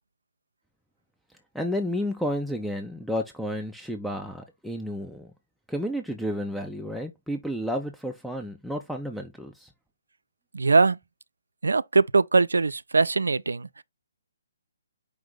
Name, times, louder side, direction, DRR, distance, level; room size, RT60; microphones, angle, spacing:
voice 1, 1.5-5.3 5.7-9.7, equal, ahead, 0.4 m, -31 dB
voice 2, 10.5-11.0 11.6-13.8, right 3 dB, 70° right, 0.3 m, -21 dB
4.9 x 2.6 x 3.7 m
figure-of-eight pair, 135°, 0 cm